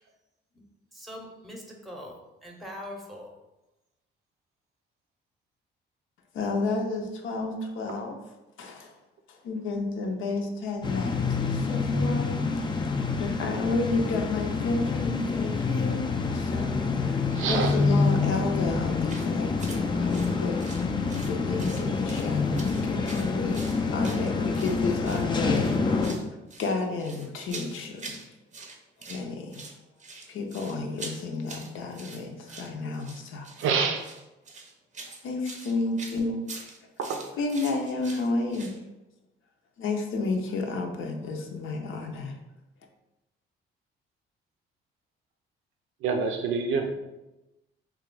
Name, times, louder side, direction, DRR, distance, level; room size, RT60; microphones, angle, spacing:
voice 1, 0.9-3.3, left 1 dB, ahead, 1 dB, 0.7 m, -42 dB
voice 2, 6.3-8.2 8.6-8.9 9.3-12.4 13.1-26.1 26.6-28.2 29.1-29.6 30.3-33.5 35.2-36.6 37.4-38.8 39.8-42.3, left 3 dB, 70° left, 3 dB, 0.6 m, -31 dB
sound 1, 10.8-26.1, left 4 dB, 20° left, 0.4 m, -27 dB
voice 3, 17.3-17.8 33.6-34.0 37.0-37.2 46.0-46.9, right 5 dB, 75° right, 4 dB, 0.6 m, -26 dB
sound 2, 19.1-19.3 19.6-19.8 20.1-21.3 21.6-22.3 22.6-24.8 25.0-25.3 25.5-26.3 26.5-28.3 28.5-29.2 29.5-38.8, right 3 dB, 35° right, 0.6 m, -44 dB
3.0 x 2.3 x 3.7 m, 0.99 s
cardioid pair, 85°, 21 cm